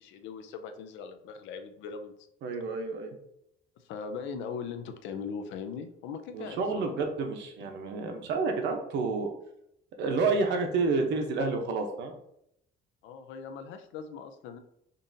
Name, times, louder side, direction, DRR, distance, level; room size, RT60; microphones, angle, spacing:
voice 1, 0.0-2.1 3.8-6.9 13.0-14.6, left 6 dB, 90° left, 8 dB, 0.5 m, -40 dB
voice 2, 2.4-3.2 6.3-9.3 10.0-12.1, right 4 dB, 70° right, 4 dB, 0.8 m, -29 dB
5.3 x 2.5 x 2.7 m, 0.76 s
cardioid pair, 150°, 19 cm